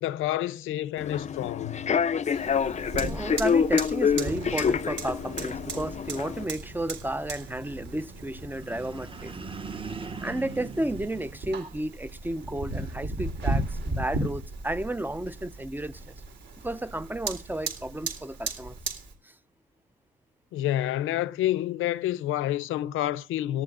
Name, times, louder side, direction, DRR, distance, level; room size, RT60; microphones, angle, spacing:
voice 1, 0.0-1.9 20.5-23.6, left 13 dB, 85° left, 0.6 m, -28 dB
Human voice / Subway metro underground, 1.0-6.4, left 6 dB, 35° left, 0.6 m, -27 dB
Fire, 2.3-19.1, right 2 dB, 65° right, 3.7 m, -36 dB
voice 2, 3.0-9.3 10.2-16.1 16.6-18.8 19.2-19.3, right 1 dB, 10° right, 0.5 m, -32 dB
sound 1, 8.4-12.0, right 5 dB, 25° right, 1.2 m, -41 dB
18.0 x 14.0 x 2.5 m
cardioid pair, 90°, 20 cm